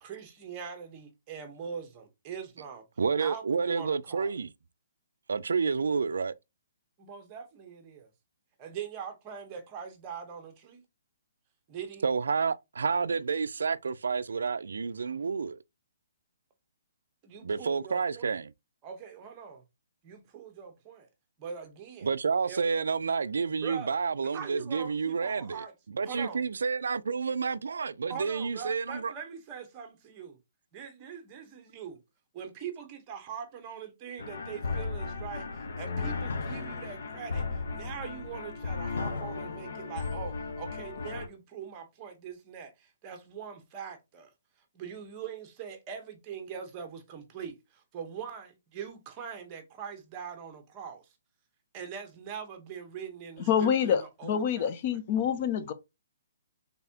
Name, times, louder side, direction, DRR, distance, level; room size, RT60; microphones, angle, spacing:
voice 1, 0.0-2.8 3.2-4.3 7.0-8.1 8.6-10.8 11.7-12.1 17.2-18.3 18.8-19.6 20.0-21.1 21.4-22.1 22.5-22.7 23.6-24.0 24.3-25.7 26.0-26.4 28.1-30.4 30.7-32.0 32.3-37.4 37.7-44.3 44.7-51.0 51.7-55.0, right 7 dB, 20° right, 0.8 m, -42 dB
voice 2, 3.0-4.5 5.3-6.3 12.0-15.6 17.4-18.5 22.0-29.1, right 5 dB, 90° right, 0.3 m, -30 dB
sound 1, 34.2-41.3, left 4 dB, 60° left, 1.0 m, -35 dB
voice 3, 53.4-55.7, left 8 dB, 30° left, 0.5 m, -27 dB
4.0 x 3.4 x 2.8 m
hypercardioid pair, 175°, 0 cm